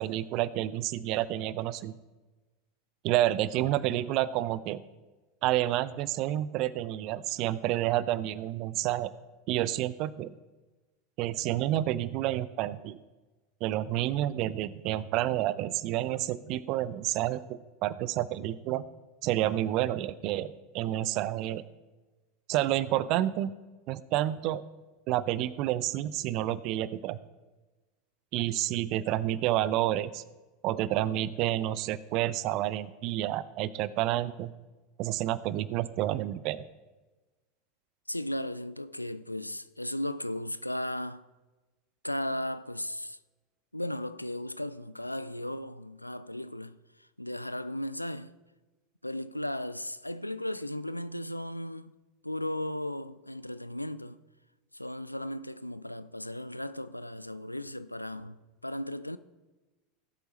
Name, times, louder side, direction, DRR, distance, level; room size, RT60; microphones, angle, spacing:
voice 1, 0.0-1.9 3.0-4.8 5.4-9.1 9.5-10.3 11.2-13.0 13.6-18.8 19.2-21.6 22.5-23.5 23.9-24.6 25.1-27.2 28.3-30.2 30.6-34.5 35.0-36.6, right 14 dB, 45° right, 0.5 m, -29 dB
voice 2, 38.1-41.3 42.0-43.2 43.7-48.3 49.0-51.9 52.2-54.2 54.7-58.4 58.6-59.2, left 1 dB, 90° left, 0.3 m, -36 dB
17.5 x 7.9 x 3.1 m
figure-of-eight pair, 80°, 0 cm